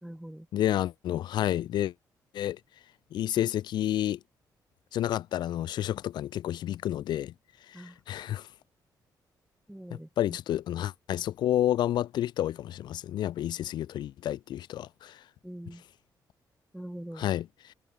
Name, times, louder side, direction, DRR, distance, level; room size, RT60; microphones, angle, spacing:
voice 1, 0.0-0.5 7.7-8.0 9.7-10.4 15.4-15.8 16.7-17.3, right 1 dB, 5° right, 1.4 m, -43 dB
voice 2, 0.5-1.9 2.3-2.6 3.1-4.2 4.9-7.3 7.7-8.5 10.2-15.2 17.2-17.7, left 12 dB, 75° left, 0.7 m, -30 dB
cardioid pair, 130°, 8 cm